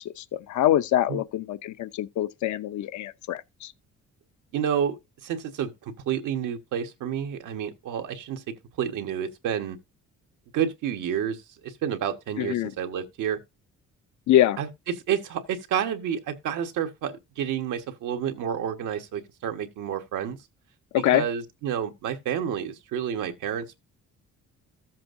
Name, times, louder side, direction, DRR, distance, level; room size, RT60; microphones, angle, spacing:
voice 1, 0.0-3.7 12.4-12.7 14.3-14.6 21.0-21.2, left 12 dB, 70° left, 0.7 m, -24 dB
voice 2, 4.5-5.0 5.2-8.4 8.8-9.8 10.5-13.4 14.6-20.4 20.9-23.8, right 8 dB, 80° right, 1.5 m, -30 dB
14.0 x 7.5 x 2.6 m
cardioid pair, 90°, 30 cm